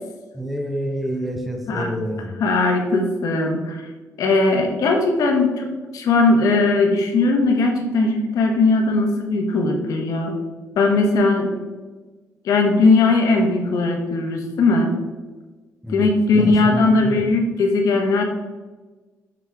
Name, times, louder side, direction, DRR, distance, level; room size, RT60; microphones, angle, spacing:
voice 1, 0.3-2.3 15.8-17.2, equal, ahead, 3 dB, 0.7 m, -28 dB
voice 2, 2.4-3.9 4.2-10.4 10.8-11.5 12.4-14.9 15.9-18.2, left 3 dB, 75° left, 2 dB, 1.4 m, -19 dB
7.4 x 5.3 x 3.5 m, 1.3 s
cardioid pair, 130°, 6 cm